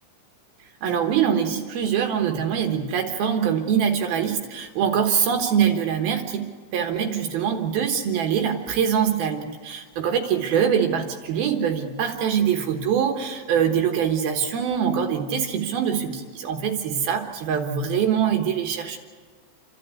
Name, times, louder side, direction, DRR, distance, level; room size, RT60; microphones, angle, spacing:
voice 1, 0.8-6.5 6.7-19.0, right 8 dB, 65° right, 3 dB, 2.7 m, -23 dB
29.0 x 12.5 x 8.4 m, 1.4 s
omnidirectional pair, 5.5 m